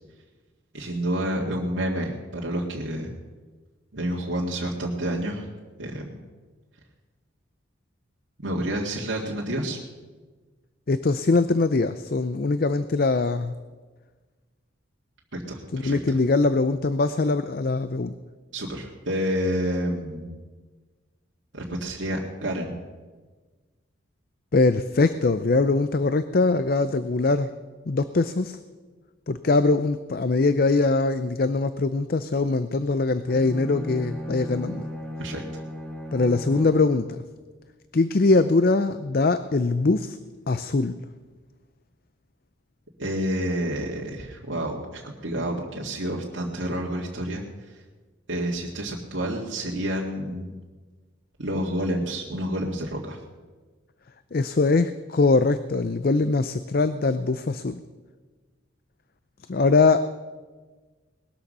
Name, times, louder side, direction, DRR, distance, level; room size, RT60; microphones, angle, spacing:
voice 1, 0.7-3.1 3.9-5.5 5.8-6.1 8.4-9.8 15.3-16.2 18.5-20.3 21.5-22.8 35.2-35.6 43.0-47.8 48.3-50.6 51.4-53.2, right 1 dB, 75° right, -3 dB, 1.9 m, -29 dB
voice 2, 10.9-13.5 15.7-18.1 24.5-27.5 27.9-28.6 29.3-34.9 36.1-37.2 37.9-40.2 40.5-40.9 54.3-57.8 59.5-60.0, left 3 dB, 50° left, 12 dB, 0.5 m, -22 dB
Bowed string instrument, 33.2-37.0, equal, 5° left, 2.0 m, -36 dB
20.0 x 13.0 x 5.4 m, 1.3 s
head